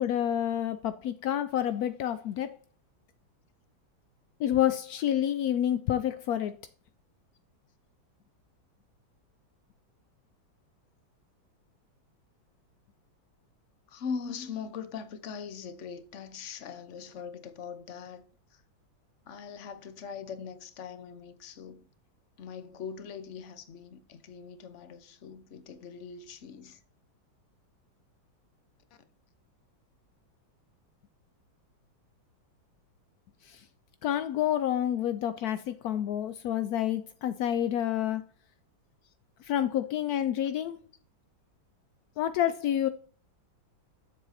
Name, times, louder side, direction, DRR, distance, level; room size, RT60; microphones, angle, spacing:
voice 1, 0.0-2.6 4.4-6.6 33.4-33.7 34.0-38.2 39.4-40.8 42.2-42.9, left 11 dB, 80° left, 0.8 m, -28 dB
voice 2, 13.9-18.2 18.5-18.6 19.3-21.9 22.4-26.8 39.0-39.1, left 6 dB, 50° left, 0.9 m, -41 dB
7.5 x 6.7 x 4.1 m
omnidirectional pair, 2.2 m